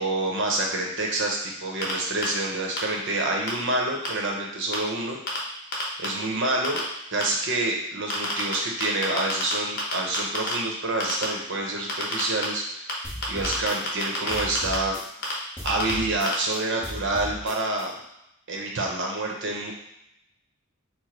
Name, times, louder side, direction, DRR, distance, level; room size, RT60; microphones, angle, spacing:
voice 1, 0.0-5.2 6.0-6.8 7.1-15.0 15.6-17.9 18.5-19.7, right 2 dB, 60° right, 0 dB, 0.9 m, -27 dB
sound 1, 1.8-1.9 2.2-2.3 2.8-2.9 3.5-3.6 4.0-4.1 4.7-4.8 5.3-5.4 5.7-6.1 6.6-6.8 7.2-7.3 8.1-8.5 8.8-9.5 9.8-10.5 11.0-11.2 11.9-12.4 12.9-13.0 13.2-14.7 15.2-15.3 15.7-15.9 16.3-16.4, left 3 dB, 50° left, 1.1 m, -28 dB
sound 2, 13.0-15.3 15.6-17.8, equal, 10° left, 1.1 m, -37 dB
4.9 x 2.2 x 4.4 m, 0.82 s
head